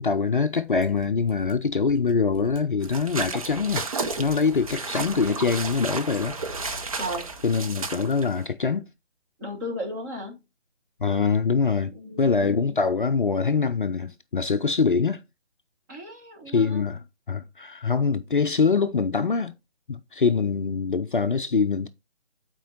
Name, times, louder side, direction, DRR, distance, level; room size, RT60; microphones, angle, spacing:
voice 1, 0.0-3.9 4.2-6.4 7.4-8.9 11.0-15.2 16.5-19.5 19.9-21.9, left 5 dB, 50° left, 0.5 m, -24 dB
Mechanisms, 0.7-6.8 7.1-7.2, left 4 dB, 10° left, 3.6 m, -47 dB
Explosion, 2.0-5.4 6.4-8.4, right 1 dB, 55° right, 2.7 m, -49 dB
sound 1, 2.8-8.4, right 4 dB, 30° right, 0.8 m, -33 dB
voice 2, 7.0-7.3 9.4-10.4 11.9-12.8 15.9-16.9, equal, 15° right, 1.4 m, -35 dB
9.0 x 4.5 x 4.0 m
figure-of-eight pair, 150°, 34 cm